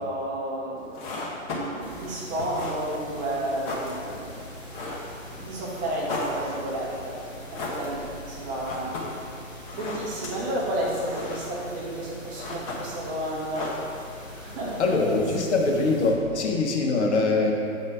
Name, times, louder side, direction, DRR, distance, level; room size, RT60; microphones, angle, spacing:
voice 1, 0.0-4.3 5.4-7.2 7.5-13.8 14.3-15.0 15.3-15.5, right 1 dB, 20° right, -5 dB, 1.2 m, -32 dB
sound 1, 0.8-14.4, left 2 dB, 25° left, 1.2 m, -37 dB
sound 2, 1.8-16.1, left 1 dB, 5° left, 1.2 m, -43 dB
voice 2, 14.8-17.5, left 3 dB, 55° left, 0 dB, 1.2 m, -23 dB
8.0 x 4.3 x 4.9 m, 2.5 s
hypercardioid pair, 135°, 41 cm